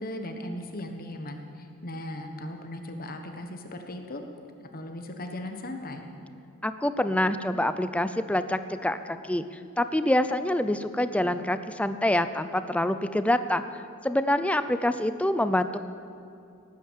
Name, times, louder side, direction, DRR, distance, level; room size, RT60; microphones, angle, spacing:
voice 1, 0.0-4.2 4.6-6.1, left 1 dB, 45° left, 5 dB, 1.3 m, -37 dB
voice 2, 6.6-9.5 9.8-13.6 14.0-15.8, left 1 dB, 5° left, 11 dB, 0.5 m, -26 dB
18.5 x 9.4 x 7.4 m, 2.7 s
head